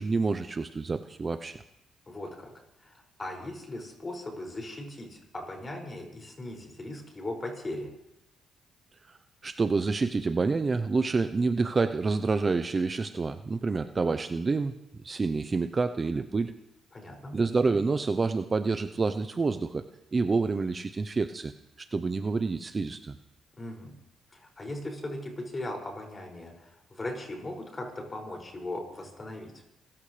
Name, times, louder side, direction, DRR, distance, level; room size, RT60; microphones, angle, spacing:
voice 1, 0.0-1.6 9.4-14.7 15.0-16.5 17.3-19.8 20.1-21.5 21.8-23.1, right 4 dB, 30° right, 9 dB, 0.7 m, -28 dB
voice 2, 2.1-2.5 2.8-7.9 16.9-17.4 23.6-23.9 24.3-29.5, left 1 dB, 25° left, 1 dB, 6.3 m, -38 dB
28.0 x 15.0 x 3.4 m, 0.83 s
cardioid pair, 90°, 0 cm